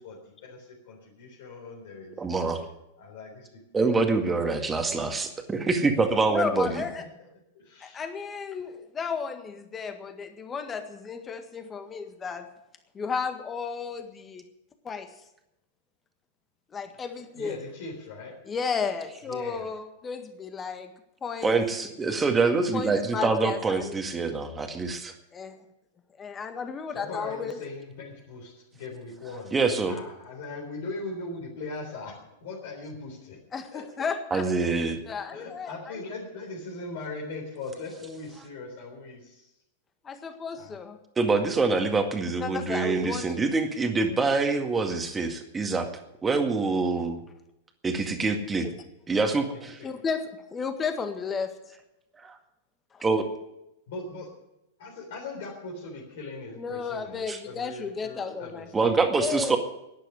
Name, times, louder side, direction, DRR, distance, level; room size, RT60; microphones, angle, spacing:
voice 1, 0.0-2.2 3.0-4.6 6.6-6.7 7.5-8.0 17.3-18.4 19.2-19.7 26.9-29.5 29.9-33.4 33.7-33.8 35.3-39.5 40.5-40.8 49.5-49.6 53.9-54.3 54.8-59.0, left 3 dB, 55° left, -3 dB, 3.9 m, -40 dB
voice 2, 2.2-2.6 3.7-6.8 21.4-25.1 29.5-30.0 34.3-35.0 41.2-45.9 46.2-47.2 47.8-48.7 49.1-49.7 52.2-52.3 53.0-53.3 57.3-57.4 58.7-59.6, right 4 dB, 15° right, 6 dB, 2.0 m, -25 dB
voice 3, 6.3-7.0 7.8-12.5 12.9-14.4 14.8-15.1 16.7-17.6 18.4-20.9 21.2-21.6 22.7-24.0 25.3-25.6 26.2-27.6 33.5-34.4 35.1-35.9 40.0-41.0 42.4-43.4 49.8-51.5 52.9-53.0 56.6-58.7 59.2-59.6, left 5 dB, 20° left, 8 dB, 1.7 m, -33 dB
11.5 x 10.5 x 9.9 m, 0.88 s
figure-of-eight pair, 95°, 0 cm